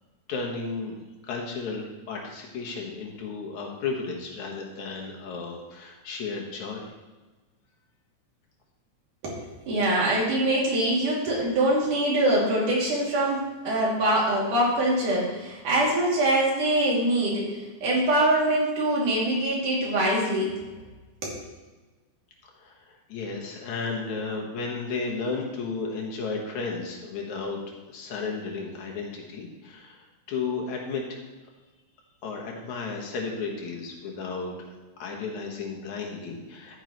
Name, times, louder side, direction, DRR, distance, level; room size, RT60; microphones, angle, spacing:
voice 1, 0.3-6.9 22.6-27.6 27.9-31.2 32.2-34.5 35.0-36.8, left 4 dB, 75° left, 0 dB, 2.8 m, -33 dB
voice 2, 9.2-20.5 21.2-21.4, right 1 dB, 85° right, -5 dB, 4.3 m, -24 dB
12.0 x 9.4 x 3.1 m, 1.2 s
omnidirectional pair, 3.5 m